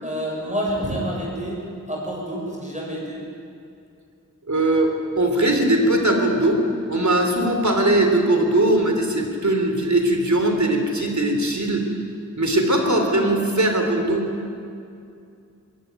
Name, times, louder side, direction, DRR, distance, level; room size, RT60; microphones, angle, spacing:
voice 1, 0.0-3.2, right 1 dB, 25° right, -3 dB, 6.7 m, -28 dB
voice 2, 4.5-6.6 6.9-11.9 12.4-14.2, right 1 dB, 65° right, 3 dB, 3.5 m, -20 dB
21.0 x 16.0 x 9.5 m, 2.5 s
wide cardioid pair, 40°, 31 cm